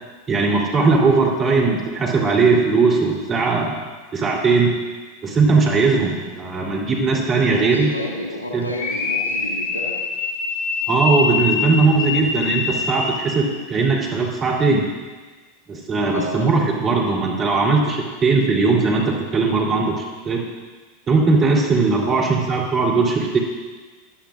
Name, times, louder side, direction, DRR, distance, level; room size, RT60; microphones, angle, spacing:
voice 1, 0.3-3.8 4.1-4.8 5.2-7.9 8.5-8.7 10.9-14.9 15.7-20.5 21.1-23.4, right 4 dB, 30° right, -2 dB, 3.8 m, -19 dB
voice 2, 7.4-10.1 16.1-16.5 18.3-18.6 22.0-22.3, left 1 dB, 90° left, -1 dB, 2.0 m, -31 dB
sound 1, 8.7-13.5, left 4 dB, 35° left, 1.9 m, -24 dB
19.5 x 11.5 x 2.7 m, 1.3 s
figure-of-eight pair, 85°, 0 cm